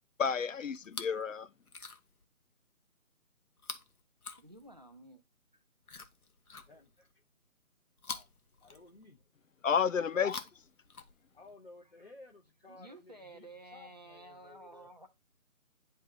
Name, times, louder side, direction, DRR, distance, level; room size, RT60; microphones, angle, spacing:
voice 1, 0.2-1.5 9.6-10.4, left 6 dB, 60° left, 0.5 m, -30 dB
Chewing mastication, 0.8-1.3 1.6-2.2 3.6-5.0 5.8-7.1 8.0-9.3 10.1-11.5 12.5-12.6, left 4 dB, 80° left, 1.0 m, -47 dB
voice 2, 4.4-5.2 12.7-15.1, right 2 dB, 30° right, 0.6 m, -52 dB
voice 3, 6.5-7.2 8.0-8.3 8.6-9.2 9.9-10.2 11.3-14.9, left 3 dB, 45° left, 1.0 m, -56 dB
9.6 x 3.3 x 3.5 m
figure-of-eight pair, 160°, 43 cm